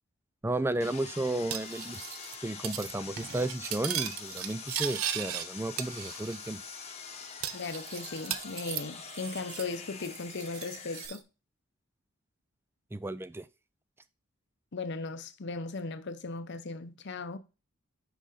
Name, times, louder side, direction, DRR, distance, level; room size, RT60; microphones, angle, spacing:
voice 1, 0.4-2.1 2.4-6.6 12.9-13.5, right 2 dB, 10° right, 0.3 m, -33 dB
Sawing, 0.8-11.1, left 6 dB, 30° left, 1.0 m, -45 dB
Cutlery silverware, 1.5-2.4 2.6-2.9 3.2-5.5 5.8-6.5 6.8-6.9 7.4-9.7 10.0-11.2, right 10 dB, 90° right, 0.7 m, -37 dB
voice 2, 7.5-11.2 14.7-17.4, left 3 dB, 55° left, 0.7 m, -37 dB
6.5 x 5.4 x 3.9 m
head